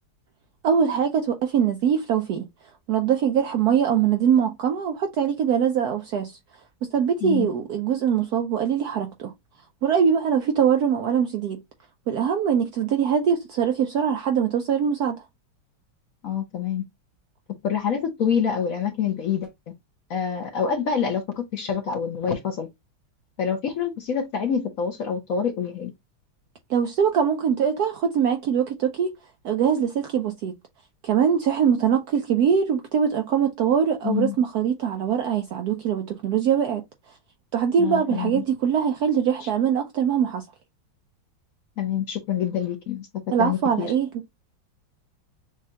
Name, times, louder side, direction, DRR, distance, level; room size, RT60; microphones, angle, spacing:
voice 1, 0.6-2.5 2.9-6.3 6.8-9.3 9.8-11.6 12.1-15.2 26.7-29.2 29.4-30.6 31.0-36.8 37.5-40.5 43.3-44.1, right 7 dB, 70° right, 0.9 m, -22 dB
voice 2, 16.2-16.8 17.6-19.5 20.1-22.7 23.4-25.9 34.0-34.4 37.8-38.4 39.4-39.5 41.8-43.1 43.4-43.9, left 7 dB, 55° left, 1.0 m, -26 dB
6.4 x 2.3 x 2.8 m
omnidirectional pair, 2.2 m